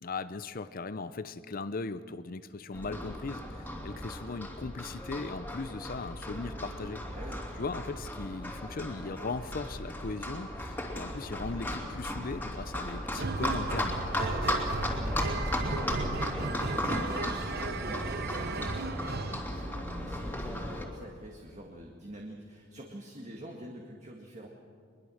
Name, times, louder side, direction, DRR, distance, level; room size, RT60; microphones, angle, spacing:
voice 1, 0.0-7.0 7.6-14.0, left 3 dB, 45° left, 13 dB, 0.6 m, -38 dB
Livestock farm animals working animals, 2.7-20.8, left 1 dB, 10° left, 2.9 m, -35 dB
voice 2, 7.1-7.7 14.2-24.5, right 1 dB, 35° right, 1 dB, 1.8 m, -47 dB
sound 1, 13.2-19.5, right 4 dB, 55° right, 0.8 m, -36 dB
22.5 x 22.0 x 6.5 m, 2.3 s
head